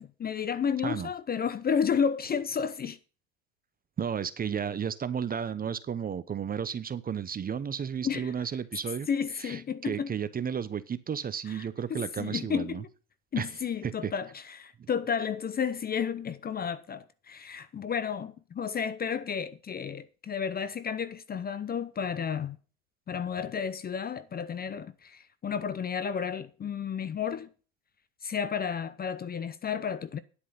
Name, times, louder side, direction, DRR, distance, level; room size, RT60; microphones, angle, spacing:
voice 1, 0.0-3.0 8.0-8.3 9.1-10.1 11.5-12.9 13.3-22.6 23.1-27.5 28.2-30.2, left 7 dB, 25° left, 0.7 m, -32 dB
voice 2, 4.0-9.1 9.4-12.8 13.4-13.5 13.8-14.1, right 7 dB, 25° right, 0.7 m, -33 dB
9.9 x 8.5 x 5.6 m
supercardioid pair, 95°, 39 cm